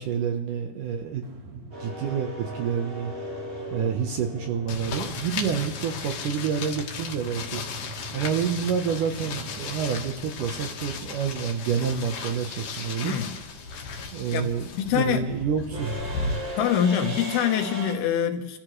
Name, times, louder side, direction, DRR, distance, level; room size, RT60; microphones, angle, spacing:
voice 1, 0.0-3.1 3.7-7.6 8.1-13.2 14.1-16.0, right 7 dB, 70° right, 2.2 m, -28 dB
sound 1, 1.2-13.4, right 3 dB, 45° right, 1.4 m, -45 dB
sound 2, 1.7-5.8 8.2-8.3 9.6-9.9 10.1-17.9, right 1 dB, 30° right, 4.9 m, -38 dB
sound 3, 4.7-16.3, left 4 dB, 60° left, 2.6 m, -36 dB
voice 2, 13.0-13.3 14.3-15.3 16.6-18.6, left 9 dB, 75° left, 3.0 m, -25 dB
29.0 x 14.5 x 3.2 m
omnidirectional pair, 4.7 m